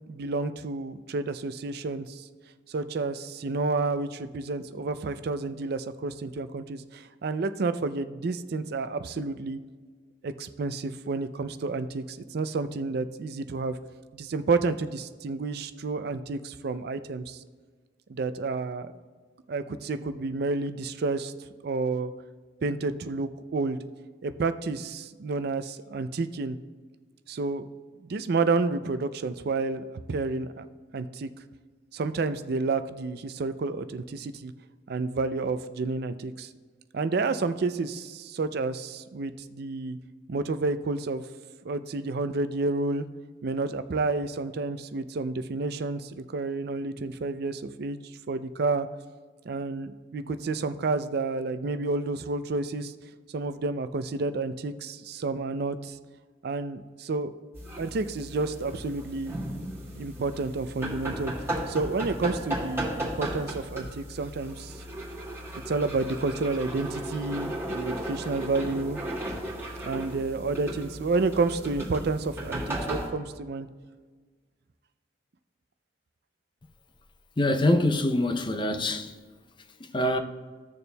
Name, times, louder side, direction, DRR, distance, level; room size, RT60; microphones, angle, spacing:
voice 1, 0.1-2.2 2.7-9.6 10.2-13.8 14.1-17.4 18.1-18.9 19.5-21.3 21.6-22.1 22.6-23.8 24.2-26.6 27.3-27.7 28.0-30.7 30.9-31.3 31.9-34.5 34.9-36.5 36.9-40.0 40.3-41.2 41.6-43.0 43.4-48.0 48.3-48.9 49.5-52.9 53.3-55.9 56.4-57.3 57.8-59.4 59.9-61.3 61.7-64.7 65.5-69.0 69.8-73.7, right 3 dB, 60° right, 0.4 m, -30 dB
sound 1, 57.5-73.1, right 1 dB, 15° right, 2.0 m, -35 dB
voice 2, 77.4-79.1 79.9-80.2, left 1 dB, 25° left, 0.5 m, -24 dB
15.5 x 6.8 x 2.2 m
head